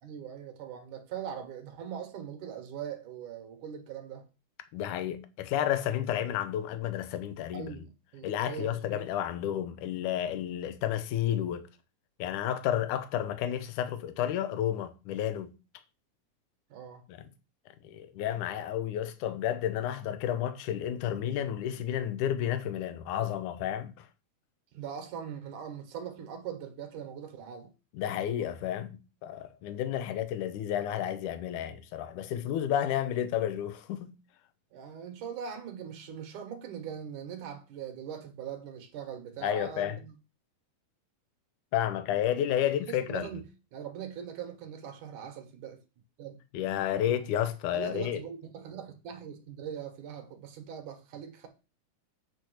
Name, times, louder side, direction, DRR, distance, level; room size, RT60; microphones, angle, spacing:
voice 1, 0.0-4.2 7.5-9.0 16.7-17.0 24.7-27.7 34.7-40.1 42.9-43.4 43.7-45.8 46.2-46.4 46.9-47.1 47.7-51.5, right 8 dB, 60° right, 3.0 m, -41 dB
voice 2, 4.7-7.7 8.2-11.7 12.2-15.5 17.1-17.2 17.8-24.1 27.9-34.1 39.4-40.0 41.7-43.3 46.5-48.2, left 10 dB, 70° left, 2.3 m, -31 dB
9.2 x 5.1 x 6.4 m
omnidirectional pair, 4.2 m